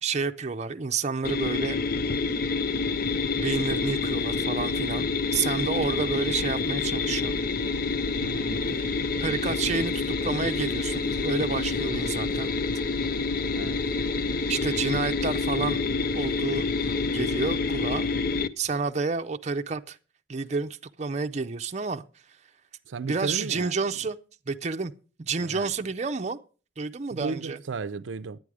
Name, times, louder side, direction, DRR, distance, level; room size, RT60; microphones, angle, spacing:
voice 1, 0.0-1.8 3.3-7.4 8.7-8.9 9.2-12.5 14.5-15.8 16.1-18.1 18.6-20.0 20.3-22.0 23.0-24.2 24.5-24.9 25.2-26.4 26.8-27.6, right 4 dB, 35° right, 0.5 m, -30 dB
sound 1, 1.2-18.5, left 4 dB, 50° left, 0.6 m, -28 dB
voice 2, 8.2-8.8 13.5-13.8 22.9-24.0 25.4-25.7 27.1-28.4, right 4 dB, 80° right, 0.5 m, -35 dB
11.0 x 9.2 x 4.8 m
head